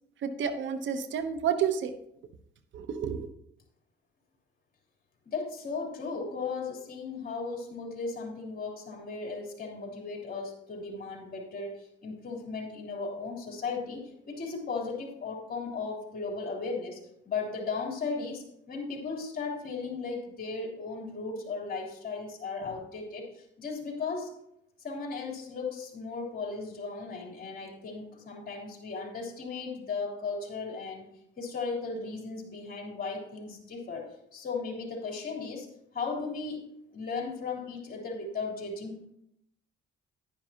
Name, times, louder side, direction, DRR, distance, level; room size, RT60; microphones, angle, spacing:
voice 1, 0.2-1.9 2.7-3.3, right 7 dB, 70° right, 9 dB, 1.0 m, -30 dB
voice 2, 5.2-17.0 17.2-24.3 24.8-31.1 31.4-35.7 35.9-36.6 36.9-39.1, left 4 dB, 50° left, 1 dB, 3.4 m, -36 dB
10.5 x 10.5 x 2.9 m, 0.76 s
cardioid pair, 90°, 20 cm